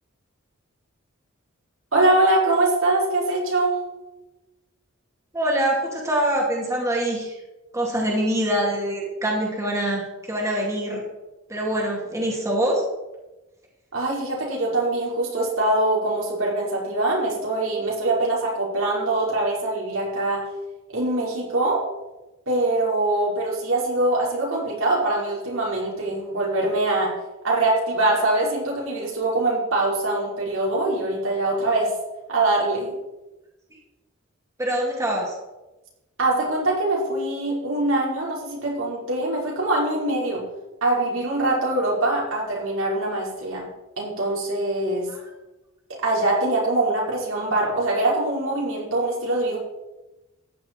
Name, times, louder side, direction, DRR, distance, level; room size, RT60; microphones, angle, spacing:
voice 1, 1.9-3.8 13.9-20.4 20.9-21.8 22.5-27.1 27.4-31.9 32.3-32.9 36.2-40.4 40.8-43.7 44.0-45.1 46.0-49.6, right 2 dB, 75° right, -4 dB, 5.1 m, -23 dB
voice 2, 5.3-7.4 7.7-11.0 11.5-12.8 34.6-35.3 45.1-45.2, right 1 dB, 15° right, -2 dB, 2.5 m, -24 dB
14.5 x 10.0 x 4.6 m, 1.0 s
head